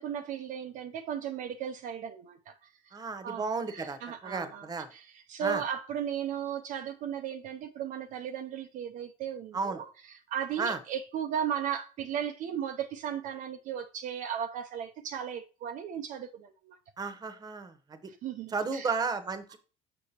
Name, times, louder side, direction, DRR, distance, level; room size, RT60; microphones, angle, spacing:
voice 1, 0.0-2.5 2.9-3.0 3.2-16.8 18.1-18.9, right 8 dB, 55° right, 0.6 m, -36 dB
voice 2, 2.9-4.9 5.4-5.6 9.5-9.8 10.6-10.8 17.0-17.7 18.5-19.6, right 4 dB, 25° right, 1.1 m, -33 dB
6.5 x 6.1 x 2.9 m
supercardioid pair, 100°, 16 cm